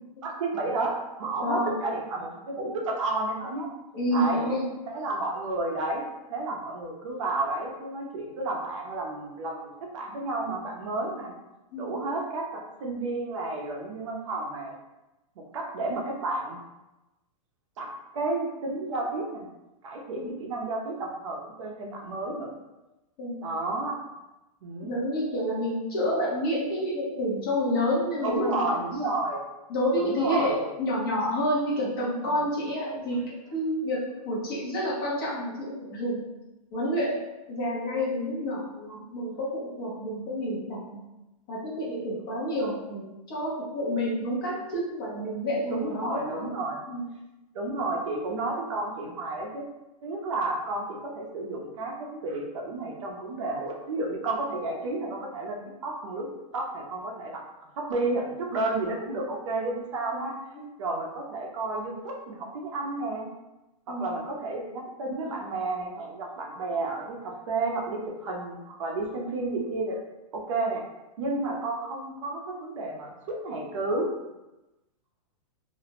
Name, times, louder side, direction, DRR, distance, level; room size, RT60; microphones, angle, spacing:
voice 1, 0.2-3.7 4.1-4.5 4.9-6.0 6.3-11.3 11.8-14.7 15.5-16.6 17.8-19.5 19.8-22.6 23.4-24.0 24.6-24.9 28.2-29.4 30.0-30.6 45.7-46.8 47.5-49.7 50.0-56.3 56.5-57.4 57.8-60.3 60.8-63.3 63.9-70.0 70.3-70.8 71.2-74.1, right 2 dB, 50° right, 0 dB, 0.5 m, -31 dB
voice 2, 1.4-1.7 3.9-4.6 11.7-11.9 20.2-20.3 23.2-23.4 24.8-28.7 29.7-36.2 36.7-37.2 37.5-41.0 41.5-46.5 46.9-47.1 60.5-60.7 63.9-64.2, equal, 35° left, -6 dB, 0.8 m, -29 dB
2.4 x 2.0 x 2.8 m, 1.0 s
hypercardioid pair, 170°, 20 cm